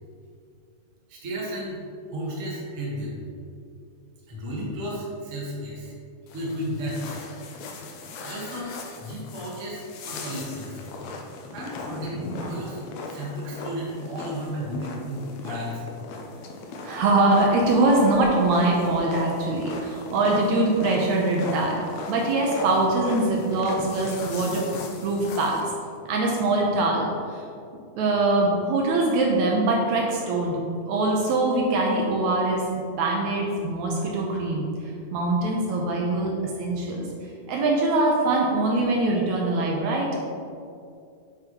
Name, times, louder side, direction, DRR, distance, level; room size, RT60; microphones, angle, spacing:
voice 1, 1.1-1.8 2.1-3.2 4.3-5.9 6.3-7.3 8.2-10.8 11.5-15.9, equal, 40° right, -4 dB, 1.1 m, -33 dB
sound 1, 6.3-25.6, left 3 dB, 75° left, 1.7 m, -38 dB
voice 2, 16.8-21.8 22.1-24.6 25.0-25.7 26.1-27.4 28.0-30.6 30.9-34.7 35.1-36.3 36.6-37.0 37.5-40.1, right 2 dB, 70° right, -1 dB, 2.0 m, -23 dB
7.8 x 7.3 x 3.0 m, 2.5 s
omnidirectional pair, 3.7 m